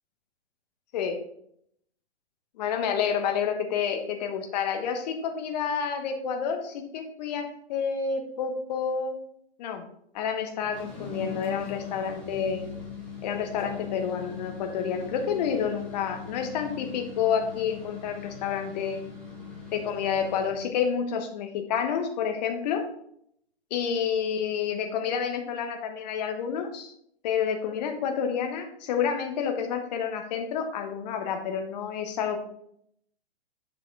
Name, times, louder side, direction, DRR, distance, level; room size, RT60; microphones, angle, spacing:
voice 1, 2.6-9.2 9.6-9.8 10.1-12.6 13.2-19.0 19.7-22.8 23.7-26.9 27.2-32.4, left 7 dB, 40° left, 5 dB, 1.2 m, -29 dB
sound 1, 10.6-20.6, left 6 dB, 5° left, 2.0 m, -40 dB
7.8 x 6.2 x 3.3 m, 0.71 s
figure-of-eight pair, 115°, 32 cm